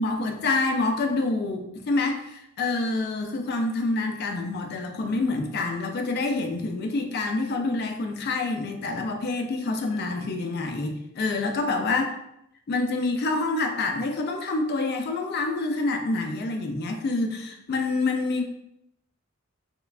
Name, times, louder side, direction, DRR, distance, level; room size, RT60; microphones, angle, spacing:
voice 1, 0.0-12.1 12.7-18.4, left 3 dB, 50° left, 3 dB, 0.4 m, -27 dB
3.1 x 2.2 x 2.3 m, 0.79 s
head